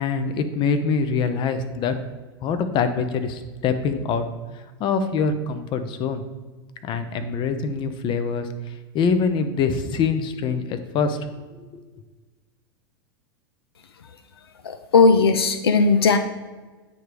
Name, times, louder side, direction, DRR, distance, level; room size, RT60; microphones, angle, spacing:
voice 1, 0.0-1.9 2.4-4.3 4.5-6.2 6.8-11.2 11.6-11.8, left 5 dB, 40° left, 10 dB, 0.7 m, -24 dB
voice 2, 14.6-16.2, left 4 dB, 85° left, 9 dB, 0.4 m, -17 dB
8.7 x 3.3 x 5.1 m, 1.3 s
hypercardioid pair, 90°, 12 cm